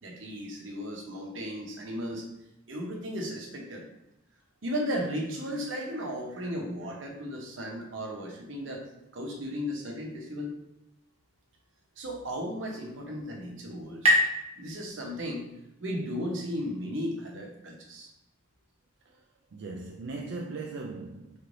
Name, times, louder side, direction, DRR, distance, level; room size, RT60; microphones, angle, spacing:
voice 1, 0.0-2.2 2.7-3.8 4.6-8.9 9.1-10.5 12.0-14.1 14.6-15.5 15.8-18.1, equal, 80° right, 0.9 m, -35 dB
sound 1, 12.6-16.0, left 1 dB, 35° right, 1.1 m, -30 dB
voice 2, 19.5-21.4, right 3 dB, 65° right, 0.4 m, -38 dB
4.2 x 3.2 x 2.6 m
head